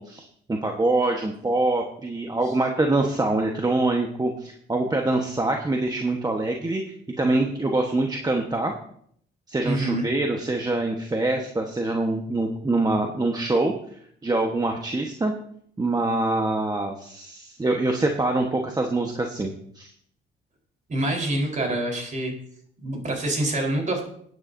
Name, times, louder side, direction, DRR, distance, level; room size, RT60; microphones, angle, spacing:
voice 1, 0.0-6.8 7.2-8.7 9.5-15.3 15.8-19.9, right 2 dB, 20° right, 2 dB, 1.2 m, -25 dB
voice 2, 9.6-10.1 20.9-22.3 22.8-24.0, right 1 dB, 40° right, 1 dB, 4.0 m, -26 dB
19.5 x 9.7 x 2.6 m, 0.64 s
cardioid pair, 90°, 20 cm